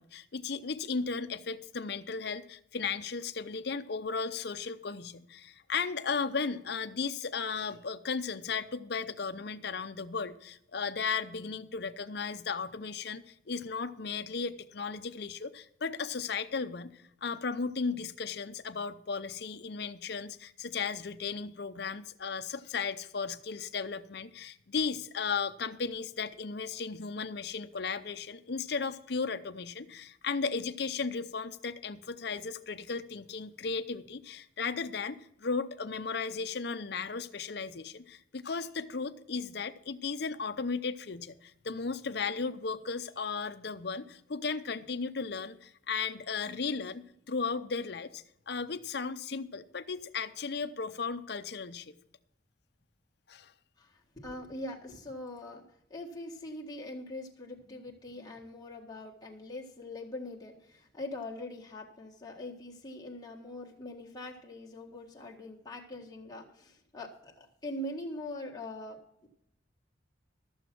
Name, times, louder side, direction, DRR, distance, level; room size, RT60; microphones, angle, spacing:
voice 1, 0.0-51.9 53.3-53.5, left 5 dB, 55° left, 10 dB, 0.7 m, -35 dB
voice 2, 53.8-55.6 55.9-69.3, left 1 dB, 20° left, -1 dB, 1.7 m, -42 dB
14.0 x 7.1 x 6.0 m, 0.79 s
head